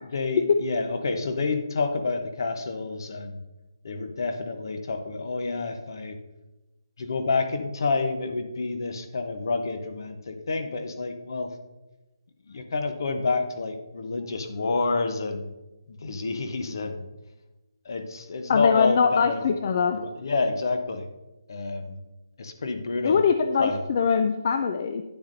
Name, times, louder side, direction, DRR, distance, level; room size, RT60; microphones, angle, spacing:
voice 1, 0.0-3.4 3.8-6.2 7.0-11.5 12.5-15.5 15.9-17.1 17.8-19.5 19.9-21.1 21.5-22.0 22.4-23.2 23.6-23.8, left 3 dB, 55° left, 7 dB, 0.9 m, -29 dB
voice 2, 18.5-20.0 23.0-25.0, left 6 dB, 35° left, 7 dB, 0.4 m, -22 dB
9.9 x 6.9 x 2.6 m, 1.1 s
hypercardioid pair, 170°, 3 cm